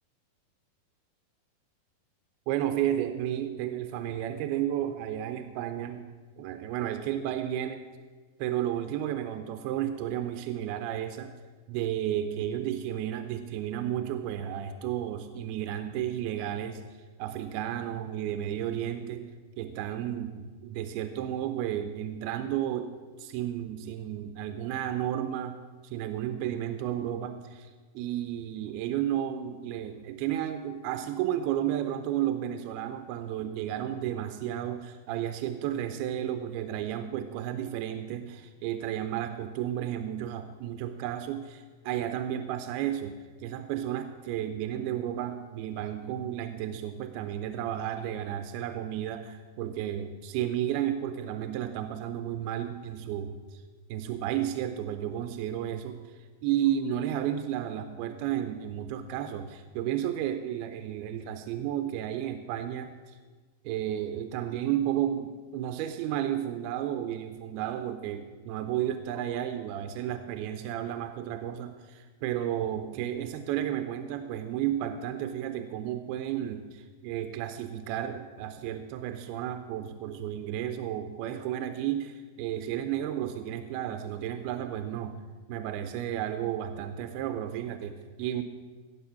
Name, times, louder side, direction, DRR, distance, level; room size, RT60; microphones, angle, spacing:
voice 1, 2.5-6.1 6.4-7.9 8.4-11.3 11.7-16.8 17.2-27.7 28.0-53.6 53.9-56.0 56.4-63.2 63.7-85.2 85.5-88.4, right 11 dB, 90° right, 8 dB, 2.6 m, -32 dB
17.0 x 7.7 x 5.6 m, 1.4 s
omnidirectional pair, 4.4 m